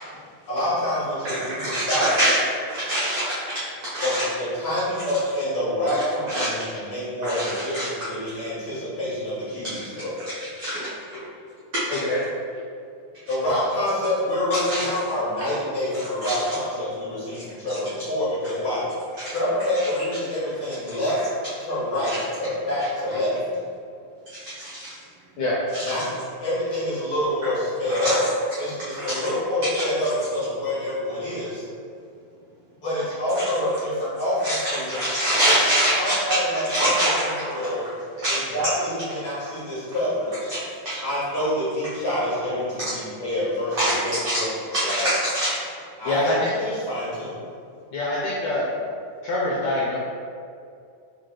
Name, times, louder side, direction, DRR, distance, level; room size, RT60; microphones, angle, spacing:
voice 1, 0.5-2.1 4.0-10.1 13.3-18.8 19.3-21.2 21.6-23.3 25.8-26.1 26.4-28.2 28.6-31.6 32.8-35.0 35.4-35.6 36.0-37.8 38.3-40.5 41.0-45.0 46.0-46.3 46.6-47.4, left 1 dB, 45° left, -11 dB, 2.0 m, -27 dB
voice 2, 1.2-2.4 2.7-3.3 3.9-4.2 6.3-6.5 7.2-7.9 10.6-10.9 11.7-12.0 14.5-14.8 16.2-16.4 17.3-17.4 22.1-22.2 24.3-24.9 25.7-25.9 27.9-28.2 29.0-29.2 33.4-33.5 34.4-34.6 34.9-36.2 36.7-37.1 38.2-38.4 40.5-40.6 40.8-41.0 43.8-43.9 44.2-44.4 44.7-45.6, right 1 dB, 75° right, -10 dB, 1.3 m, -24 dB
voice 3, 46.0-46.5 47.9-48.7 49.2-50.0, left 1 dB, 80° left, -6 dB, 1.6 m, -24 dB
6.1 x 3.9 x 2.2 m, 2.4 s
omnidirectional pair, 3.7 m